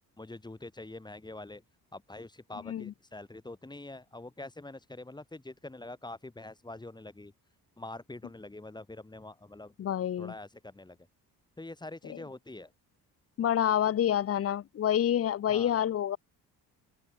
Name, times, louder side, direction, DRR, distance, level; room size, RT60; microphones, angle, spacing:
voice 1, 0.2-1.6 1.9-7.3 7.8-9.7 10.2-11.0 11.6-12.7 15.5-15.8, left 2 dB, 10° left, 3.8 m, -45 dB
voice 2, 9.8-10.3 12.1-12.2 13.4-16.2, left 10 dB, 40° left, 0.7 m, -28 dB
cardioid pair, 140°, 38 cm